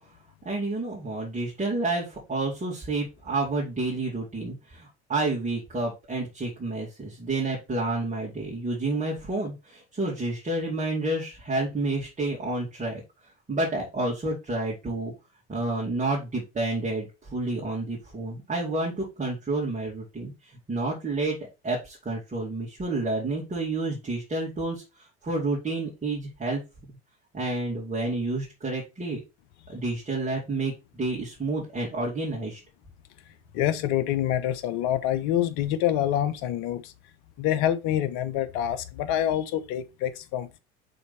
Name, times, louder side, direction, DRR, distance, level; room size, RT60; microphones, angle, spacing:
voice 1, 0.4-13.0 13.5-15.1 15.5-21.4 21.6-26.6 26.9-27.0 27.3-29.2 29.7-32.6, right 2 dB, 20° right, 2.7 m, -29 dB
voice 2, 33.5-36.9 37.4-40.6, left 11 dB, 65° left, 1.0 m, -26 dB
5.6 x 4.3 x 4.2 m
hypercardioid pair, 75°, 34 cm